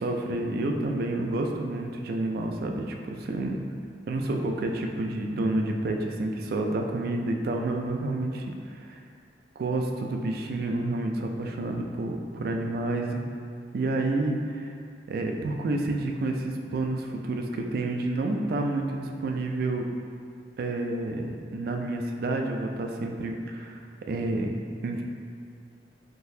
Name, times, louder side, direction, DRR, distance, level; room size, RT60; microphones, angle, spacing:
voice 1, 0.0-3.6 4.1-9.0 9.6-13.3 13.7-14.7 15.1-19.8 20.6-23.8 24.1-25.0, right 2 dB, 55° right, 2 dB, 0.3 m, -29 dB
3.8 x 2.6 x 2.7 m, 2.2 s
head